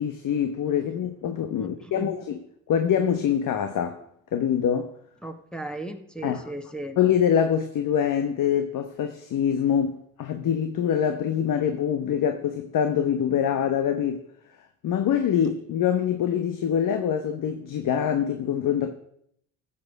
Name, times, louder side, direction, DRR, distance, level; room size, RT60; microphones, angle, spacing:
voice 1, 0.0-2.4 2.7-4.0 4.3-4.9 6.2-6.4 7.0-14.2 14.8-18.9, left 8 dB, 55° left, 1.2 m, -24 dB
voice 2, 1.5-2.1 5.2-7.0, right 1 dB, ahead, 1.5 m, -36 dB
14.5 x 7.2 x 6.1 m
hypercardioid pair, 65°, 39 cm